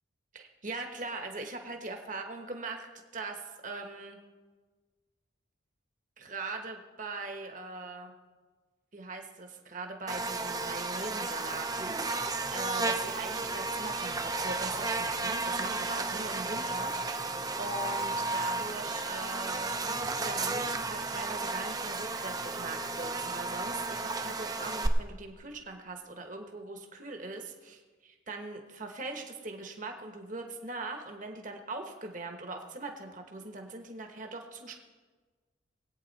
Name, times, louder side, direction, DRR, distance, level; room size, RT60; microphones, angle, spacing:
voice 1, 0.3-2.9 3.1-4.2 6.2-8.1 8.9-34.7, right 3 dB, 40° right, 4 dB, 1.1 m, -41 dB
Buzz, 10.1-24.9, right 3 dB, 20° right, 0.6 m, -33 dB
20.5 x 8.8 x 4.1 m, 1.4 s
head